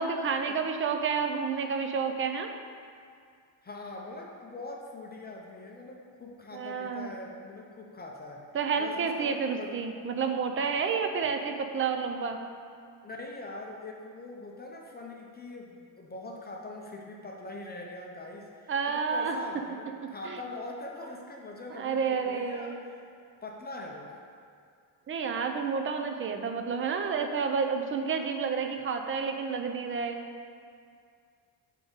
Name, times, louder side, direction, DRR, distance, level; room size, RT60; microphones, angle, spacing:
voice 1, 0.0-2.5 6.5-7.1 8.5-12.4 18.7-19.4 20.2-20.4 21.8-22.8 25.1-30.2, right 5 dB, 30° right, 5 dB, 0.3 m, -30 dB
voice 2, 3.6-8.5 8.8-9.8 13.0-23.1 23.4-24.2, left 2 dB, 20° left, -1 dB, 0.6 m, -43 dB
4.6 x 3.9 x 5.3 m, 2.3 s
cardioid pair, 125°, 47 cm